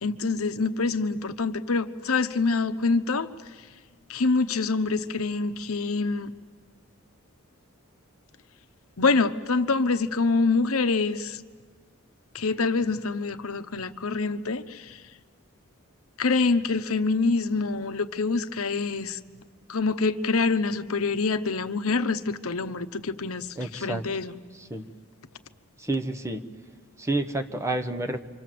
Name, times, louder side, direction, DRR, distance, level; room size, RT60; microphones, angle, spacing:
voice 1, 0.0-3.3 4.1-6.3 9.0-11.4 12.3-15.0 16.2-19.2 19.7-23.5 23.7-24.4, left 4 dB, 85° left, 11 dB, 1.0 m, -26 dB
voice 2, 23.6-24.0 24.5-24.9 25.8-26.4 27.0-28.2, right 2 dB, 15° right, 6 dB, 1.1 m, -29 dB
27.5 x 25.5 x 7.7 m, 1.5 s
head